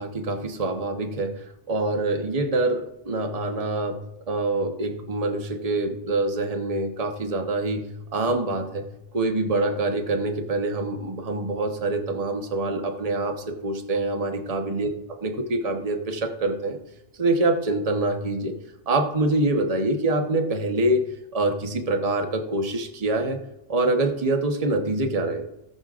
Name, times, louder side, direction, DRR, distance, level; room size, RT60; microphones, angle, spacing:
voice 1, 0.0-1.3 1.7-4.0 4.3-8.9 9.1-14.9 15.2-16.8 17.2-18.6 18.9-21.0 21.3-23.4 23.7-25.5, right 2 dB, 30° right, 3 dB, 1.2 m, -25 dB
18.5 x 6.6 x 2.5 m, 0.91 s
omnidirectional pair, 1.2 m